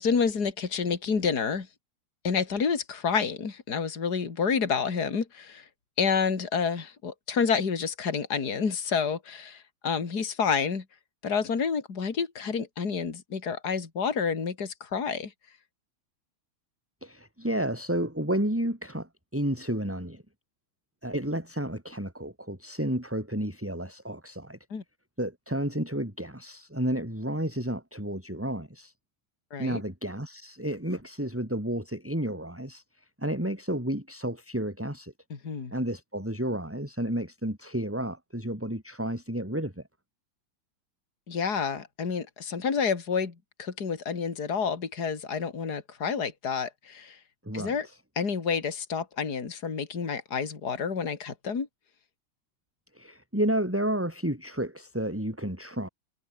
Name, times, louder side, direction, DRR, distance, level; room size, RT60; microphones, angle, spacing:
voice 1, 0.0-1.7 2.2-5.6 6.0-10.8 11.2-15.3 24.7-24.8 29.5-29.8 35.3-35.7 41.3-43.3 43.6-47.2 47.5-47.9 48.2-51.7, left 6 dB, 50° left, 3.2 m, -29 dB
voice 2, 17.0-20.2 21.0-24.6 25.2-28.9 29.6-32.8 33.2-35.1 35.7-39.8 47.4-48.0 52.9-55.9, right 1 dB, 5° right, 4.9 m, -31 dB
omnidirectional pair, 2.3 m